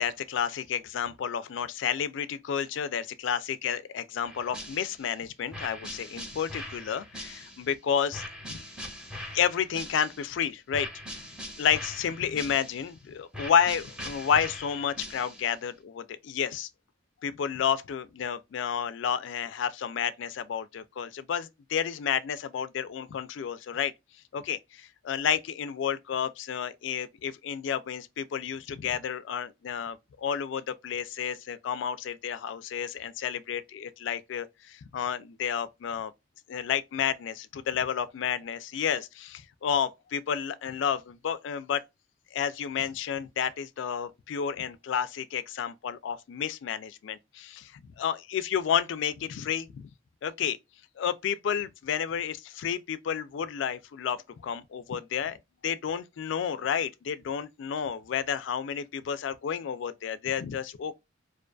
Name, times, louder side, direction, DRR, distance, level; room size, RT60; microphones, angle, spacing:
voice 1, 0.0-8.6 9.3-11.2 11.6-16.7 17.2-23.9 24.3-36.1 36.5-41.8 42.3-49.9 50.2-50.6 51.0-55.4 55.6-61.0, left 8 dB, 75° left, 0.3 m, -31 dB
sound 1, 4.3-5.1 5.5-7.7 8.1-10.3 10.7-12.9 13.3-15.6, left 1 dB, 5° right, 0.6 m, -42 dB
2.5 x 2.2 x 2.4 m
head